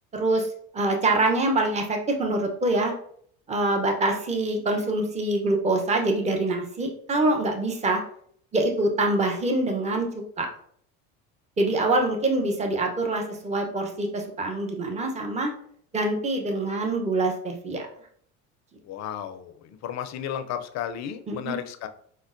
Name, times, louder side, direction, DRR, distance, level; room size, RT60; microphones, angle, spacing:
voice 1, 0.1-2.9 3.5-8.0 8.5-10.1 10.4-10.5 11.6-15.5 15.9-17.8 21.3-21.5, right 2 dB, 15° right, 3 dB, 0.7 m, -25 dB
voice 2, 18.8-21.9, left 9 dB, 45° left, 8 dB, 0.5 m, -33 dB
5.0 x 2.1 x 2.5 m, 0.62 s
hypercardioid pair, 80°, 39 cm